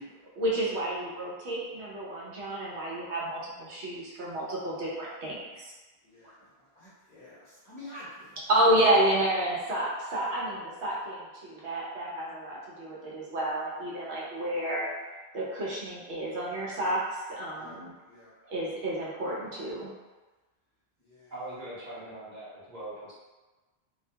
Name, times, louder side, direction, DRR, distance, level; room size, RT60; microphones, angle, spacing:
voice 1, 0.4-5.7 8.5-14.9 15.3-17.9 18.4-19.9, right 1 dB, 85° right, -5 dB, 1.0 m, -30 dB
voice 2, 6.0-8.4 17.5-18.3 21.0-21.3, left 1 dB, 30° left, -11 dB, 0.9 m, -48 dB
voice 3, 21.3-23.1, right 1 dB, 45° right, -9 dB, 1.0 m, -41 dB
2.5 x 2.2 x 2.7 m, 1.2 s
omnidirectional pair, 1.1 m